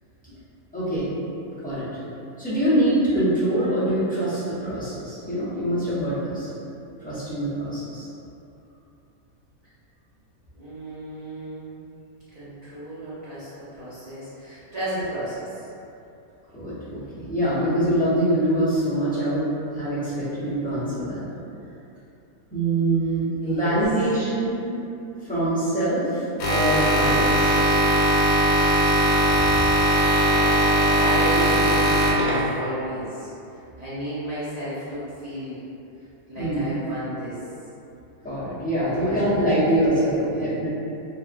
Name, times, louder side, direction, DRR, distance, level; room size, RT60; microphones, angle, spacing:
voice 1, 0.7-1.1 1.5-1.9 2.4-6.5 7.0-8.1 16.5-19.5 19.7-21.2 22.5-24.6 25.3-27.6 36.4-36.7 38.2-40.7, right 1 dB, 10° left, -14 dB, 0.5 m, -24 dB
voice 2, 10.6-11.9 12.3-15.7 23.4-23.8 30.9-33.3 33.8-35.6 36.3-37.4 38.8-40.6, right 1 dB, 35° right, -13 dB, 0.7 m, -33 dB
sound 1, 26.4-32.6, right 1 dB, 85° left, 1.1 m, -19 dB
2.7 x 2.4 x 2.4 m, 2.8 s
omnidirectional pair, 1.5 m